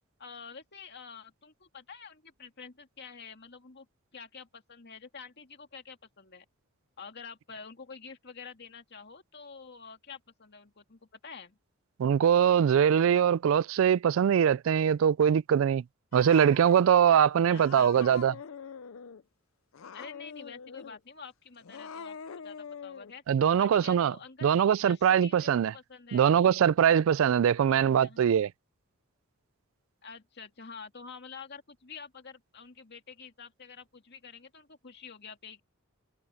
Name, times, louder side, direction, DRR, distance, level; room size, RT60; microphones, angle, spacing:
voice 1, 0.2-3.9 4.1-6.5 7.0-11.6 17.5-18.2 19.9-23.2 23.6-26.4 27.7-28.2 30.0-35.6, left 5 dB, 55° left, 2.3 m, -48 dB
voice 2, 12.0-15.8 16.1-18.3 23.3-24.1 24.4-25.7 26.1-28.5, right 8 dB, 70° right, 0.3 m, -22 dB
Cat, 16.1-16.8 17.5-19.2 19.7-21.0 21.6-23.1, left 6 dB, 70° left, 0.5 m, -44 dB
head